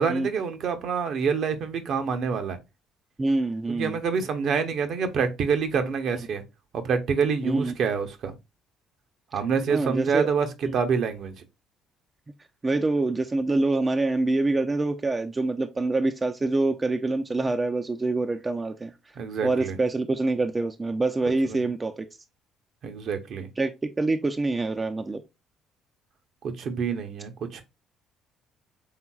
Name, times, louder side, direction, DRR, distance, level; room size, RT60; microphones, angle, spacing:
voice 1, 0.0-2.6 3.7-6.4 6.7-8.3 9.3-10.5 10.7-11.3 19.2-19.8 21.5-21.6 22.8-23.5 26.4-27.6, right 6 dB, 55° right, 0.8 m, -26 dB
voice 2, 3.2-4.0 7.4-7.7 9.7-10.3 10.7-10.8 12.6-18.9 19.4-22.0 23.6-25.2, right 2 dB, 25° right, 0.5 m, -25 dB
5.7 x 3.7 x 2.3 m
hypercardioid pair, 50°, 0 cm